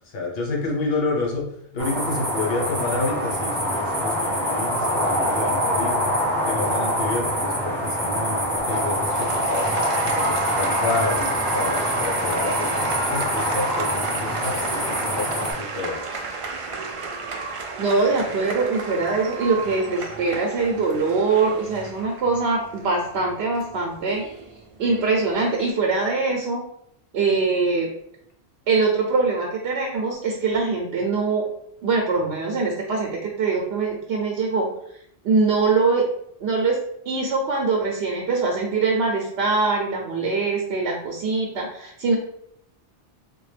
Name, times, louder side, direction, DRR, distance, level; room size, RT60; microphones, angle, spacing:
voice 1, 0.1-1.5 1.7-6.1 6.5-9.7 10.1-16.0, left 3 dB, 70° left, 0 dB, 1.0 m, -29 dB
sound 1, 1.8-15.5, equal, 5° left, 0.6 m, -25 dB
Applause, 8.6-25.7, right 4 dB, 55° right, 0.3 m, -33 dB
voice 2, 17.8-24.3 24.8-26.6 27.1-27.9 28.7-31.5 31.8-34.7 35.2-36.0 36.4-36.8 37.1-42.2, right 4 dB, 85° right, 0 dB, 0.9 m, -23 dB
3.7 x 2.2 x 3.2 m, 0.72 s
omnidirectional pair, 1.1 m